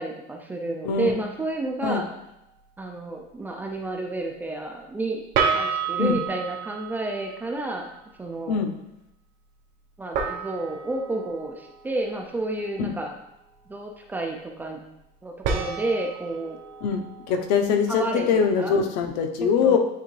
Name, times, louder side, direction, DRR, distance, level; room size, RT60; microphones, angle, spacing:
voice 1, 0.0-2.0 2.8-5.2 5.5-7.9 8.2-8.6 10.0-13.1 13.7-14.8 15.2-16.6 17.9-18.3 18.6-18.7 19.4-19.8, right 2 dB, 10° right, 1 dB, 0.4 m, -30 dB
sound 1, 0.9-1.1 5.3-7.7 10.1-12.7 15.4-18.5, right 6 dB, 55° right, 0.9 m, -31 dB
voice 2, 16.8-19.8, left 6 dB, 85° left, 6 dB, 0.8 m, -23 dB
8.9 x 3.4 x 3.2 m, 0.88 s
cardioid pair, 180°, 21 cm